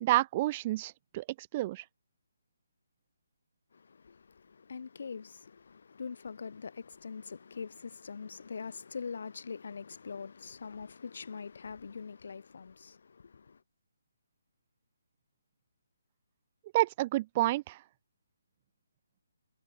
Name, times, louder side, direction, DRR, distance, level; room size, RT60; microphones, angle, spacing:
voice 1, 0.0-1.8 16.7-17.8, right 16 dB, 30° right, 0.6 m, -29 dB
voice 2, 3.7-13.6, left 5 dB, 65° left, 5.4 m, -43 dB
figure-of-eight pair, 150°, 0 cm